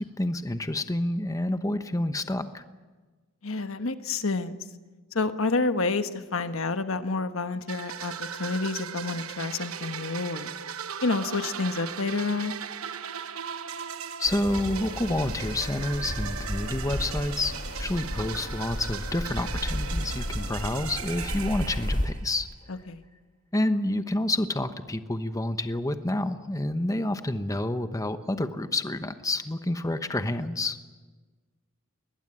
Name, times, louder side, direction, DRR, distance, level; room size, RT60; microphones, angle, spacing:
voice 1, 0.2-2.6 14.2-17.5 17.8-22.8 23.5-30.8, left 1 dB, 15° left, 9 dB, 1.0 m, -29 dB
voice 2, 3.4-4.6 5.1-10.5 11.0-12.5 22.7-23.0, left 3 dB, 70° left, 9 dB, 1.3 m, -29 dB
sound 1, 7.7-22.5, right 8 dB, 80° right, 1.1 m, -38 dB
sound 2, 14.2-22.1, left 1 dB, 40° left, 1.9 m, -33 dB
21.5 x 20.0 x 10.0 m, 1.3 s
head